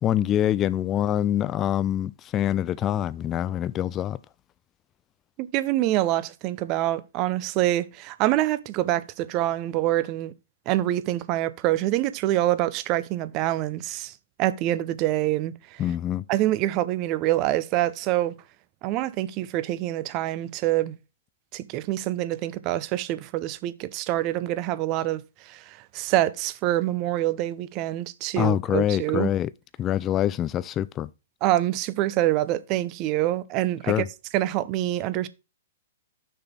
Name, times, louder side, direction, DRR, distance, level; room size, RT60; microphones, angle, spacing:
voice 1, 0.0-4.2 15.8-16.2 28.4-29.5 29.8-31.1 33.9-34.1, left 11 dB, 25° left, 0.3 m, -25 dB
voice 2, 5.4-10.3 10.7-14.1 14.4-15.8 16.3-18.3 18.8-21.0 21.5-29.3 31.4-34.0 34.3-35.3, right 15 dB, 35° right, 0.6 m, -26 dB
6.5 x 3.9 x 6.0 m
hypercardioid pair, 120°, 0 cm